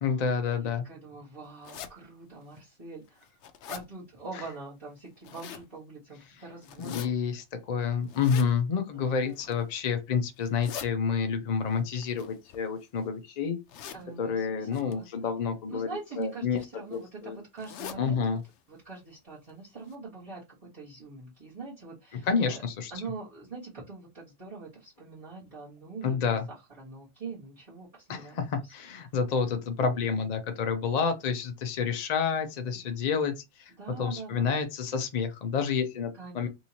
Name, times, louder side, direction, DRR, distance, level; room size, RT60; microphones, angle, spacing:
voice 1, 0.0-0.8 6.8-13.6 14.2-15.9 16.2-16.6 16.9-17.4 18.0-18.4 22.3-22.9 26.0-26.4 28.1-33.7 34.0-36.5, left 6 dB, 55° left, 0.4 m, -29 dB
voice 2, 0.6-3.3 3.7-7.1 8.9-9.4 13.9-18.3 18.7-22.6 22.9-28.7 32.3-33.1 33.8-34.6 36.2-36.5, right 4 dB, 30° right, 1.6 m, -44 dB
sound 1, 1.6-1.9 2.6-2.7 3.1-3.9 5.0-5.7 6.6-7.1 8.1-8.5 9.2-9.7 10.4-10.9 12.0-13.0 13.7-14.0 14.7-14.9 16.0-16.2 16.6-16.7 16.9-17.0 17.6-18.0 18.4-18.5 18.8-18.9 19.5-19.6 19.9-20.0, left 8 dB, 70° left, 0.8 m, -42 dB
3.6 x 2.8 x 2.8 m
omnidirectional pair, 1.3 m